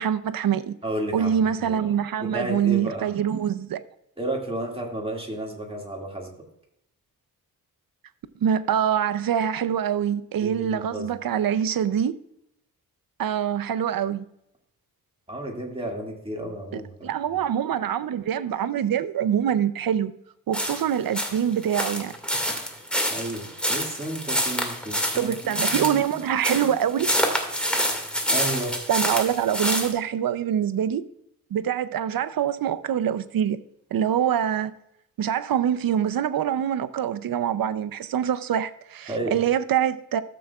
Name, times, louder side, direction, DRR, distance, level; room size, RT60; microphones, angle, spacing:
voice 1, 0.0-0.8 1.1-3.8 8.4-12.1 13.2-14.3 16.7-20.1 20.5-22.1 25.1-27.1 28.9-31.0 31.5-33.6 33.9-34.7 35.2-40.2, right 9 dB, 70° right, 0.6 m, -25 dB
voice 2, 0.8-1.8 2.2-3.1 4.2-6.3 10.4-11.1 15.3-17.4 23.1-26.0 26.6-26.7 28.3-28.8 39.1-39.3, right 1 dB, 15° right, 2.1 m, -32 dB
sound 1, 20.5-29.9, equal, 5° left, 1.9 m, -27 dB
14.0 x 7.6 x 2.3 m
wide cardioid pair, 115°, 36 cm